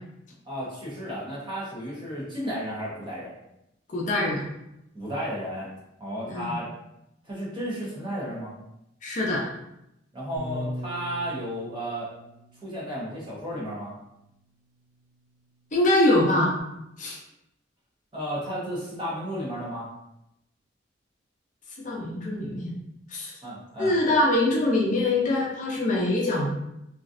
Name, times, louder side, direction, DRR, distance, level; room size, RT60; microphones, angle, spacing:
voice 1, 0.4-3.3 4.9-5.7 6.0-6.7 7.2-8.5 10.1-12.1 12.6-13.9 18.1-19.9 23.4-24.0, equal, 25° right, -7 dB, 1.0 m, -33 dB
voice 2, 3.9-4.5 6.3-6.5 9.0-9.5 15.7-16.5 17.0-17.2 21.8-22.7 23.1-23.3 23.8-26.5, left 1 dB, 40° left, -3 dB, 0.6 m, -23 dB
Bass guitar, 10.4-16.6, left 1 dB, 70° right, 0.9 m, -42 dB
3.1 x 2.5 x 2.5 m, 0.84 s
head